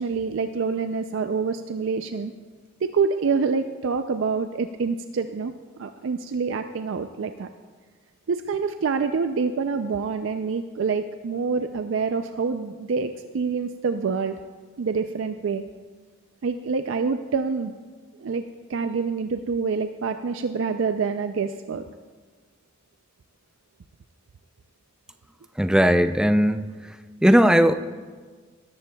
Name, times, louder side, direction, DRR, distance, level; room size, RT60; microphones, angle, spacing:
voice 1, 0.0-2.3 2.8-5.5 5.8-7.5 8.3-14.3 14.8-15.6 16.4-17.7 18.2-18.4 18.7-21.8, right 5 dB, 70° right, 8 dB, 0.4 m, -26 dB
voice 2, 25.6-26.9 27.2-27.8, equal, 5° right, 10 dB, 0.4 m, -18 dB
18.0 x 13.5 x 2.3 m, 1.5 s
head